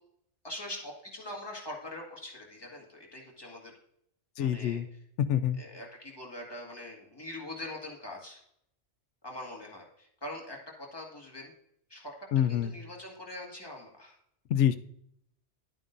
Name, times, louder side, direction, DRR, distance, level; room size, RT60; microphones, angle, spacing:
voice 1, 0.4-3.7 4.4-4.8 5.6-8.4 9.2-11.5 11.9-12.1 12.5-14.2, left 1 dB, 20° left, -2 dB, 1.9 m, -43 dB
voice 2, 4.4-4.9 5.2-5.6 12.3-12.7 14.5-14.8, left 10 dB, 85° left, 11 dB, 0.9 m, -26 dB
11.0 x 8.8 x 2.6 m, 0.73 s
omnidirectional pair, 1.2 m